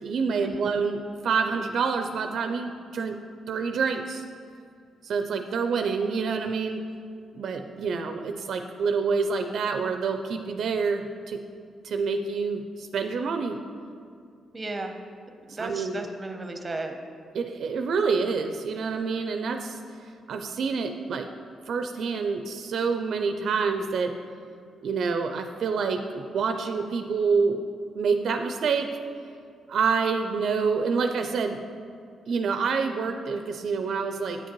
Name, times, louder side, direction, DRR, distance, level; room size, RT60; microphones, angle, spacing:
voice 1, 0.0-3.2 3.5-4.2 5.0-6.8 7.3-11.4 11.8-13.6 15.5-16.0 17.3-19.8 20.3-21.3 21.7-24.1 24.8-27.6 27.9-29.1 29.7-31.6 32.3-34.4, right 5 dB, 65° right, 6 dB, 0.4 m, -27 dB
voice 2, 14.5-14.9 15.5-17.0, right 2 dB, 25° right, 5 dB, 0.7 m, -34 dB
8.8 x 7.2 x 3.0 m, 2.4 s
cardioid pair, 105°, 0 cm